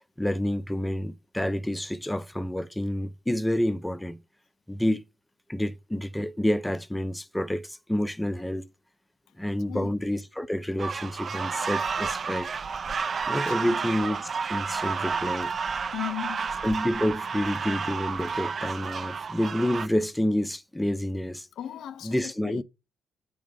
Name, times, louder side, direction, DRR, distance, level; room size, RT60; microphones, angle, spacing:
voice 1, 0.2-4.2 4.7-5.0 5.5-8.7 9.4-12.5 13.2-15.5 16.6-21.5 22.0-22.6, left 1 dB, 5° left, 0.6 m, -28 dB
sound 1, 10.8-19.9, right 5 dB, 45° right, 0.5 m, -31 dB
voice 2, 15.9-16.6 21.6-22.6, left 12 dB, 80° left, 0.4 m, -36 dB
8.3 x 3.7 x 5.1 m
cardioid pair, 90°, 0 cm